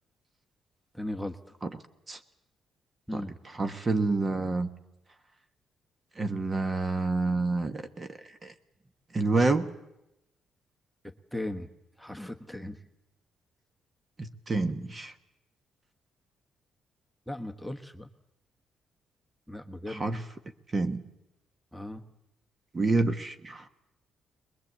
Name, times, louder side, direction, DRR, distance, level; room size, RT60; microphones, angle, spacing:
voice 1, 0.9-1.4 3.1-3.4 11.0-11.7 12.0-12.8 17.3-18.1 19.5-20.0 21.7-22.0, left 1 dB, ahead, 8 dB, 1.3 m, -37 dB
voice 2, 3.1-4.7 6.2-8.5 9.1-9.7 14.2-15.1 19.9-20.2 20.7-21.0 22.7-23.7, right 3 dB, 30° right, 9 dB, 1.3 m, -28 dB
21.0 x 21.0 x 8.2 m, 0.87 s
cardioid pair, 90°, 0 cm